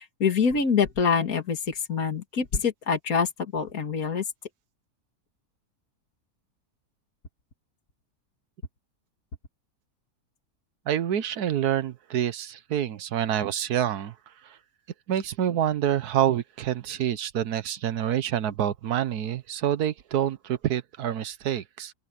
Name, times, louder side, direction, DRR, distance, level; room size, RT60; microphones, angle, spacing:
voice 1, 0.0-4.2, left 6 dB, 70° left, 2.5 m, -25 dB
voice 2, 10.9-14.1 14.4-14.6 15.1-21.9, right 10 dB, 85° right, 1.5 m, -27 dB
open air
omnidirectional pair, 1.6 m